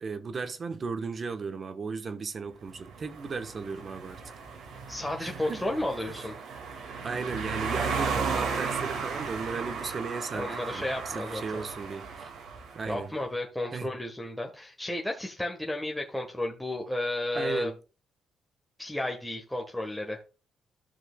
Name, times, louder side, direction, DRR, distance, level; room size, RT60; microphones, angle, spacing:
voice 1, 0.0-4.2 5.2-5.6 6.1-6.3 7.0-12.3 12.7-13.1 13.7-13.9 17.3-17.7, right 4 dB, 40° right, 1.1 m, -36 dB
sound 1, 2.7-13.0, right 5 dB, 80° right, 2.1 m, -35 dB
voice 2, 4.9-6.3 10.3-11.6 12.9-17.7 18.8-20.2, left 1 dB, 5° left, 1.3 m, -33 dB
14.5 x 6.1 x 2.3 m
cardioid pair, 90°, 0 cm